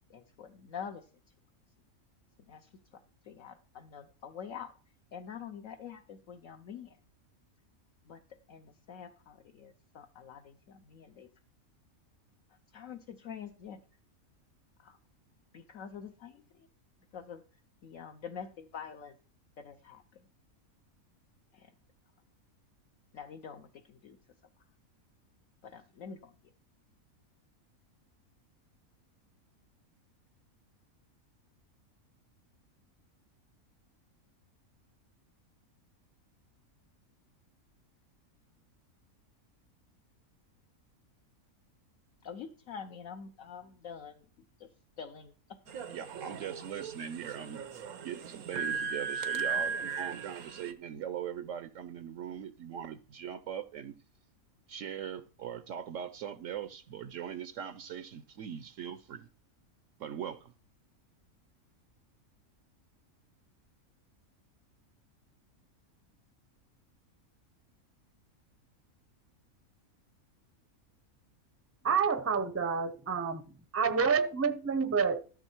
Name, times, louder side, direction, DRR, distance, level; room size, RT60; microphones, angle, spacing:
voice 1, 0.1-1.1 2.4-2.7 3.2-4.7 5.1-7.0 8.1-8.2 8.5-11.3 12.5-13.8 14.8-15.0 15.5-16.7 17.1-17.4 17.8-19.2 19.6-20.2 21.5-21.7 23.1-24.2 25.6-26.4 42.2-44.7 45.0-45.6, left 7 dB, 65° left, 1.2 m, -46 dB
sound 1, 45.7-50.7, right 5 dB, 90° right, 1.4 m, -37 dB
voice 2, 45.9-47.7 48.0-53.9 54.7-59.3 60.0-60.5, right 9 dB, 70° right, 0.9 m, -40 dB
voice 3, 71.8-73.4 73.7-75.2, right 6 dB, 15° right, 0.5 m, -28 dB
13.5 x 6.2 x 4.5 m
omnidirectional pair, 1.5 m